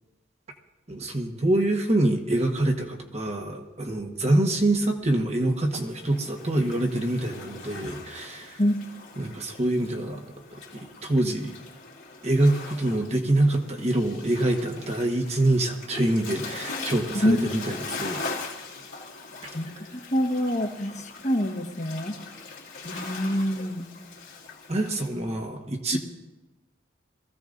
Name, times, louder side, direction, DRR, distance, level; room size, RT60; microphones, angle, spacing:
voice 1, 0.9-8.6 9.2-10.2 11.0-11.5 12.2-18.2 19.4-19.5 22.9-23.2 24.7-26.0, right 1 dB, 35° right, 3 dB, 1.3 m, -25 dB
Waves surf, 5.7-25.1, left 4 dB, 75° left, 2.7 m, -41 dB
voice 2, 19.5-22.1 22.8-23.9 25.9-26.0, left 1 dB, 40° left, 3 dB, 1.3 m, -26 dB
22.0 x 15.5 x 2.6 m, 1.1 s
head